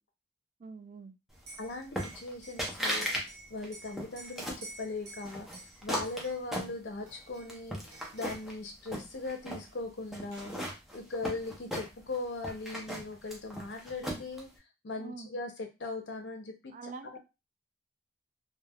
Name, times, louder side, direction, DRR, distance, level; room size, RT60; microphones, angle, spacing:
voice 1, 0.6-1.2 15.0-15.3 16.7-17.2, right 4 dB, 45° right, 0.3 m, -45 dB
Liquid, 1.3-6.6 7.1-7.6 7.9-8.5 9.7-9.8 10.0-10.7, right 3 dB, 65° right, 0.7 m, -51 dB
voice 2, 1.6-3.1 3.5-5.5 5.8-10.6 10.9-14.5 14.8-16.7 17.1-17.2, left 3 dB, 75° left, 0.7 m, -39 dB
sound 1, 2.0-2.3 2.6-3.2 3.6-4.7 5.2-7.1 7.5-8.5 8.9-9.6 10.1-12.2 12.4-14.4, equal, ahead, 0.6 m, -36 dB
3.1 x 2.1 x 2.3 m
head